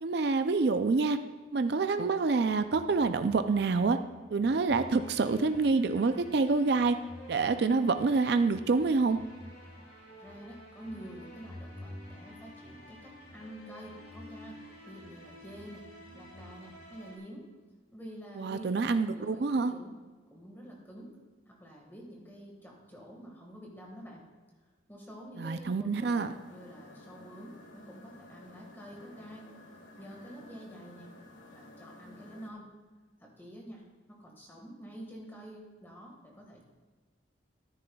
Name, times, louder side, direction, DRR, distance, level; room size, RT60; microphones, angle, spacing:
voice 1, 0.0-1.2 1.5-4.0 4.3-7.0 7.3-9.2 18.4-19.7 25.4-26.3, right 4 dB, 55° right, 9 dB, 0.4 m, -27 dB
sound 1, 2.7-17.2, left 1 dB, 60° left, 3.2 m, -50 dB
voice 2, 10.2-14.6 14.8-17.5 17.9-19.9 20.3-21.2 21.5-24.3 24.9-29.5 30.0-31.1 31.4-32.7 33.2-36.6, equal, 10° left, -1 dB, 1.6 m, -48 dB
sound 2, 26.0-32.5, left 1 dB, 90° left, 1.5 m, -53 dB
13.5 x 10.0 x 2.3 m, 1.4 s
head